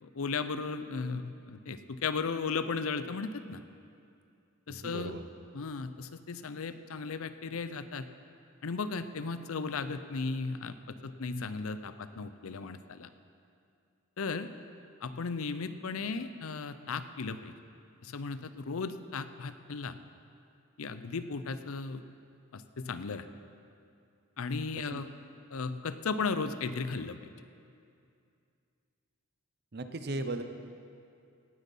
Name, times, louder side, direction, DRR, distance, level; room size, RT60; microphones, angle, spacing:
voice 1, 0.0-3.6 4.7-5.1 5.5-8.1 8.6-13.1 14.2-14.5 15.0-17.5 18.0-20.0 20.8-22.0 22.5-23.3 24.4-25.1 25.5-27.2, left 4 dB, 75° left, 12 dB, 0.6 m, -36 dB
voice 2, 4.7-5.2 24.9-25.0 29.7-30.4, right 2 dB, 45° right, 8 dB, 0.7 m, -36 dB
17.5 x 8.1 x 5.4 m, 2.5 s
head